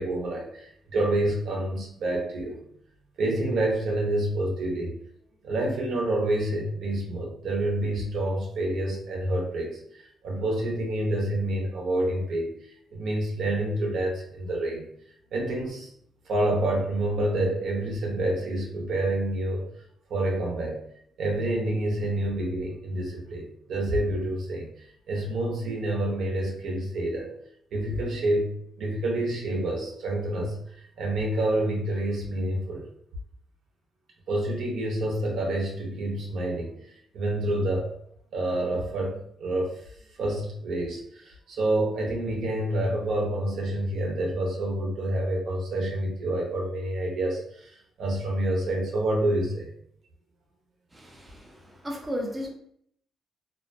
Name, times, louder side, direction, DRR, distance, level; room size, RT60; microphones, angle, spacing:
voice 1, 0.0-2.6 3.2-4.9 5.4-12.5 12.9-14.9 15.3-15.9 16.2-19.7 20.1-20.8 21.2-24.7 25.1-27.3 27.7-28.5 28.8-32.9 34.3-36.8 37.1-37.9 38.3-39.8 40.2-49.7, right 1 dB, 70° right, -1 dB, 0.7 m, -28 dB
voice 2, 50.9-52.5, equal, 15° right, 0 dB, 0.5 m, -35 dB
2.4 x 2.1 x 2.4 m, 0.67 s
cardioid pair, 90°, 0 cm